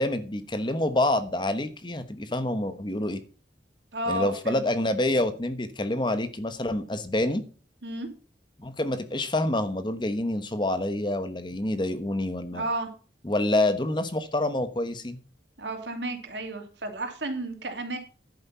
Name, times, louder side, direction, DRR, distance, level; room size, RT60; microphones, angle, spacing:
voice 1, 0.0-3.2 4.1-7.4 8.6-12.6 13.2-15.2, left 1 dB, 25° left, 11 dB, 1.1 m, -27 dB
voice 2, 3.9-4.6 7.8-8.1 12.5-12.9 15.6-18.0, right 2 dB, 85° right, 5 dB, 3.0 m, -32 dB
11.0 x 8.9 x 5.6 m, 0.37 s
head